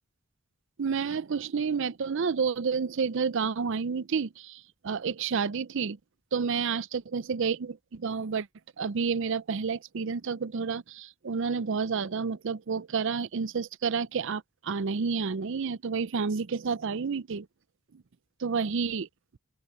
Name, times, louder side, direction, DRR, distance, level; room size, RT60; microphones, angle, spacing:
voice 1, 0.8-6.0 6.3-8.5 8.8-17.5 18.4-19.1, right 5 dB, 55° right, 0.5 m, -30 dB
open air
head